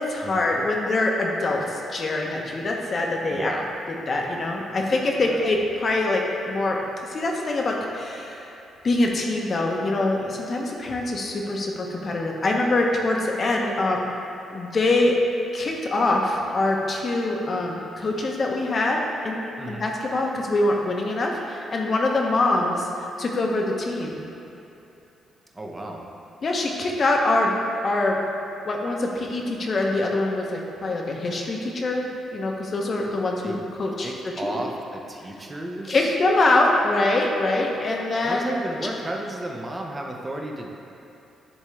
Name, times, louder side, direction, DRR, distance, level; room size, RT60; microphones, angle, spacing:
voice 1, 0.0-3.5 4.1-6.8 7.1-8.5 8.8-14.0 14.5-15.1 15.5-22.9 23.2-24.2 26.4-27.6 27.8-28.2 28.7-34.1 34.4-34.6 35.9-38.5, left 2 dB, 45° left, 0 dB, 0.9 m, -24 dB
voice 2, 3.3-3.7 5.2-5.4 19.6-19.9 25.5-26.1 33.4-33.6 34.0-36.1 38.2-40.7, right 1 dB, 25° right, 0 dB, 0.9 m, -33 dB
10.0 x 3.6 x 3.3 m, 2.8 s
cardioid pair, 75°, 0 cm